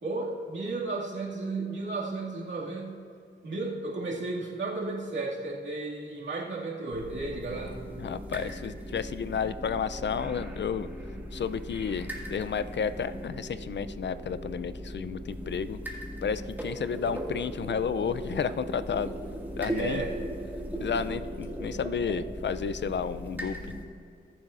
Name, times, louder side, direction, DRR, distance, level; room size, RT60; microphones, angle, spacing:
voice 1, 0.0-3.0 3.4-7.8 19.7-20.1, right 3 dB, 70° right, -4 dB, 2.2 m, -33 dB
sound 1, 6.9-23.8, equal, 10° right, 2.0 m, -38 dB
voice 2, 8.0-10.9 11.3-15.8 16.2-19.2 19.6-20.0 20.8-23.6, left 6 dB, 65° left, 13 dB, 0.5 m, -32 dB
20.0 x 7.5 x 2.5 m, 2.4 s
cardioid pair, 60°, 20 cm